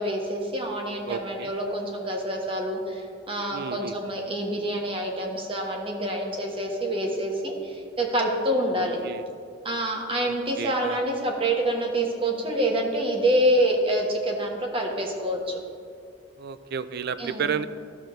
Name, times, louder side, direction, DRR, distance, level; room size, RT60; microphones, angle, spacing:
voice 1, 0.0-9.0 9.6-15.6 17.2-17.5, right 1 dB, 30° right, 0 dB, 1.2 m, -27 dB
voice 2, 1.1-1.5 3.5-4.0 8.7-9.3 10.2-11.0 16.4-17.7, right 6 dB, 60° right, 14 dB, 0.4 m, -32 dB
13.5 x 6.5 x 3.1 m, 2.2 s
head